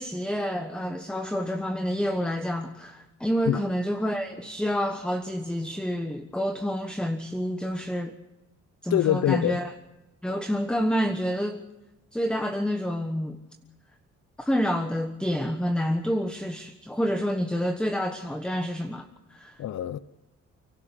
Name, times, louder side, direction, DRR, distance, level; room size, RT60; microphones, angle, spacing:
voice 1, 0.0-8.1 8.8-9.7 10.2-11.6 12.1-13.4 14.4-19.6, equal, 5° left, 1.3 m, -28 dB
voice 2, 8.9-9.6 19.6-20.0, left 12 dB, 60° left, 0.7 m, -24 dB
30.0 x 12.5 x 8.5 m
cardioid pair, 90°, 30 cm